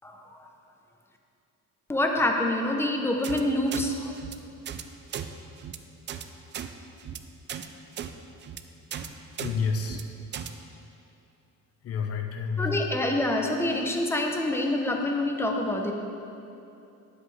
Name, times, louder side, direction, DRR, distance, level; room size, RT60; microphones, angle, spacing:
voice 1, 0.0-0.5 1.9-4.1 12.6-15.9, left 1 dB, 10° left, 2 dB, 0.6 m, -26 dB
sound 1, 3.2-3.4 3.7-3.8 4.2-4.3 4.7-4.8 5.1-5.3 5.6-5.8 6.1-6.2 6.5-6.7 7.0-7.2 7.5-7.7 8.0-8.1 8.4-8.6 8.9-9.1 9.4-9.5 9.8-10.0 10.3-10.5, right 9 dB, 35° right, 0.4 m, -36 dB
voice 2, 9.4-10.0 10.3-10.5 11.8-12.9, left 5 dB, 50° left, 4 dB, 0.8 m, -30 dB
9.9 x 7.9 x 3.2 m, 2.7 s
cardioid pair, 140°, 31 cm